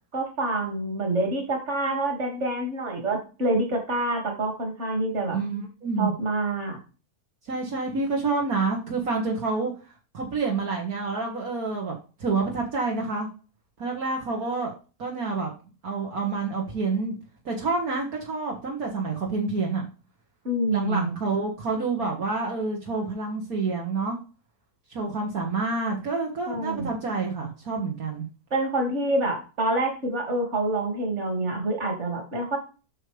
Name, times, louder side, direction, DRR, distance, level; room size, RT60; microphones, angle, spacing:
voice 1, 0.1-5.4 6.0-6.8 20.4-21.1 26.5-26.9 28.5-32.6, right 2 dB, 45° right, 2 dB, 2.6 m, -27 dB
voice 2, 5.3-6.1 7.5-9.7 10.1-13.3 13.8-14.7 15.0-15.5 15.8-17.2 17.5-19.9 20.7-24.2 24.9-28.3, right 4 dB, 65° right, -1 dB, 2.1 m, -28 dB
8.5 x 6.5 x 3.4 m, 0.33 s
omnidirectional pair, 1.7 m